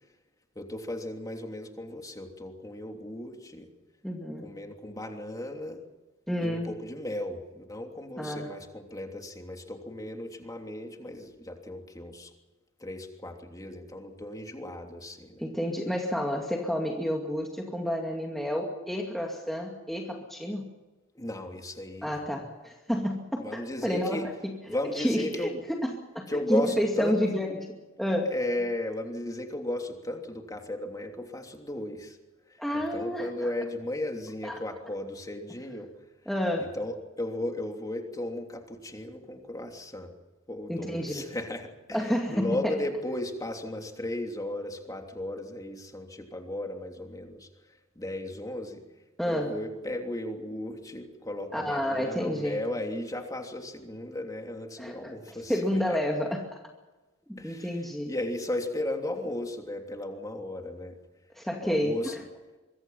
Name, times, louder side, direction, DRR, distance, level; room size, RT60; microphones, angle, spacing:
voice 1, 0.5-3.7 4.4-5.8 6.4-12.3 12.8-15.4 21.1-22.2 23.4-24.3 24.7-25.6 26.3-27.2 28.3-32.2 32.5-35.9 36.6-40.1 40.5-47.5 47.9-48.8 49.3-55.6 55.9-56.0 57.4-61.0 61.6-62.2, left 1 dB, 20° left, 3 dB, 3.1 m, -35 dB
voice 2, 4.0-4.5 6.3-6.7 8.2-8.5 15.4-20.7 22.0-24.5 25.0-28.3 32.6-33.5 34.4-34.6 36.3-36.7 40.7-41.3 41.9-42.7 49.2-49.5 51.5-52.6 54.8-55.1 55.5-56.6 57.3-58.1 61.4-62.2, equal, ahead, 0 dB, 2.3 m, -30 dB
25.0 x 23.5 x 5.7 m, 1.2 s
head